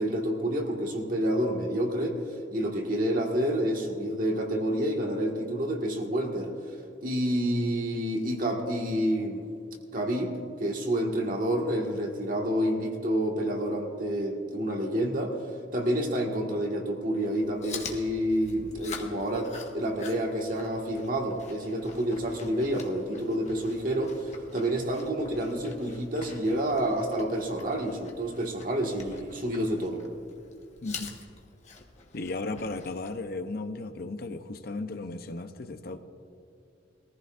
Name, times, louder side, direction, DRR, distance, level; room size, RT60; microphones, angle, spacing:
voice 1, 0.0-2.2 2.5-6.5 7.0-9.4 9.9-10.3 10.6-15.3 15.7-30.0, right 1 dB, 50° right, 1 dB, 1.7 m, -29 dB
Chewing mastication, 17.3-33.2, left 5 dB, 40° left, 1.3 m, -46 dB
voice 2, 32.1-36.0, left 2 dB, 55° left, 8 dB, 0.7 m, -35 dB
22.0 x 14.5 x 2.5 m, 2.5 s
head